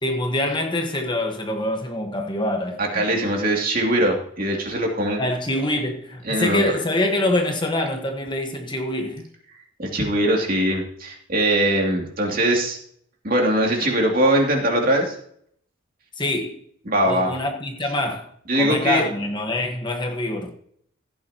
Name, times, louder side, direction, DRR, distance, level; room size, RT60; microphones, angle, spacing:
voice 1, 0.0-3.4 5.2-9.3 16.2-16.6 17.0-18.3 18.6-20.5, left 1 dB, 20° left, 3 dB, 1.3 m, -25 dB
voice 2, 2.8-5.3 6.3-6.6 9.8-12.8 13.2-15.2 16.9-17.3 18.5-19.0, right 1 dB, 45° right, 0 dB, 2.6 m, -21 dB
15.5 x 9.5 x 2.9 m, 0.64 s
head